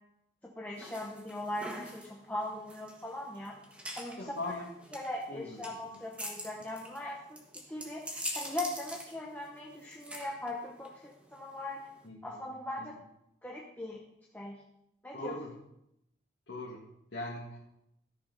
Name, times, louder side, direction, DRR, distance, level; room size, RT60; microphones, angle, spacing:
voice 1, 0.6-3.6 3.9-4.5 4.9-7.4 7.7-11.9 12.2-13.0 13.4-14.0 14.3-14.6 15.0-15.4, left 1 dB, 10° left, -2 dB, 0.9 m, -40 dB
sound 1, 0.8-12.1, equal, 5° right, 1.4 m, -44 dB
voice 2, 4.2-4.7 5.3-6.1 12.0-12.5 12.8-12.9 15.1-15.5 16.5-17.6, left 2 dB, 90° left, -3 dB, 1.6 m, -41 dB
13.5 x 6.1 x 5.2 m, 0.81 s
head